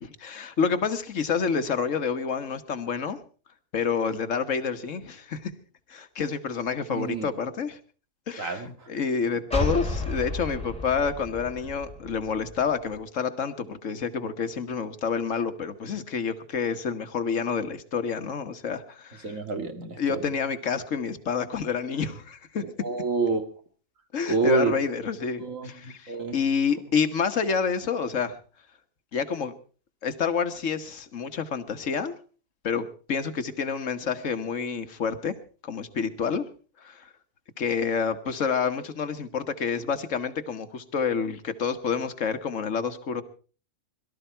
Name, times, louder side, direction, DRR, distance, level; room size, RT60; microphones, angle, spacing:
voice 1, 0.0-3.2 3.7-5.5 5.9-7.8 8.3-19.4 20.0-22.6 24.1-28.4 29.1-29.5 30.0-32.1 32.6-35.3 35.6-36.4 36.8-37.1 37.6-43.2, left 6 dB, 70° left, 9 dB, 1.6 m, -28 dB
voice 2, 6.9-7.3 8.4-8.7 19.2-20.2 22.8-23.4 24.3-24.7 25.4-26.4, right 4 dB, 75° right, 6 dB, 2.5 m, -27 dB
sound 1, 9.5-13.0, left 1 dB, 5° left, 3.4 m, -32 dB
22.0 x 13.0 x 4.5 m, 0.39 s
omnidirectional pair, 1.4 m